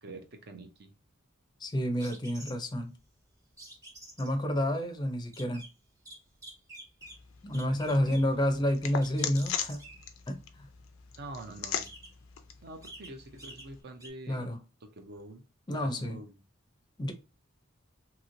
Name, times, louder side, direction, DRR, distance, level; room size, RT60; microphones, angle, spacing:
voice 1, 0.0-0.9 7.6-8.2 11.1-11.9 12.6-15.4 15.7-16.4, right 2 dB, 55° right, 0.5 m, -46 dB
voice 2, 1.6-2.9 4.2-5.6 7.4-9.8 10.3-10.7 14.3-14.6 15.7-16.2 17.0-17.1, left 1 dB, 20° left, 0.5 m, -29 dB
sound 1, 2.0-2.8 3.6-4.3 5.2-5.7 6.1-7.2 7.5-8.3 8.7-10.1 11.3-11.4 11.7-12.3 12.6-13.1 13.4-13.7 14.0-14.1, right 1 dB, 15° right, 0.8 m, -48 dB
sound 2, 7.0-13.8, left 8 dB, 90° left, 0.5 m, -40 dB
3.0 x 2.8 x 2.5 m
head